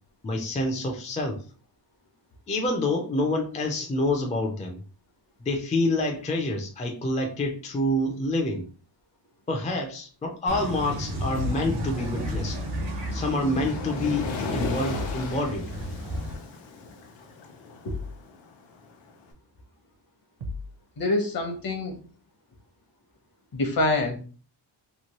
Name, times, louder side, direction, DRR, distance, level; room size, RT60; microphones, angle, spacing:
voice 1, 0.2-1.4 2.5-4.8 5.4-8.6 9.5-12.6 13.1-15.7, left 1 dB, 20° left, 2 dB, 0.3 m, -27 dB
sound 1, 10.5-16.3, equal, 90° right, 1.1 m, -32 dB
Waves surf, 12.0-19.2, left 3 dB, 90° left, 0.7 m, -37 dB
sound 2, 12.2-12.6 14.9-15.3 17.8-18.2 20.4-20.8, left 1 dB, 65° right, 0.6 m, -35 dB
voice 2, 21.0-22.0 23.5-24.2, left 2 dB, 50° left, 4 dB, 0.8 m, -26 dB
3.0 x 2.5 x 2.9 m, 0.39 s
wide cardioid pair, 170°, 44 cm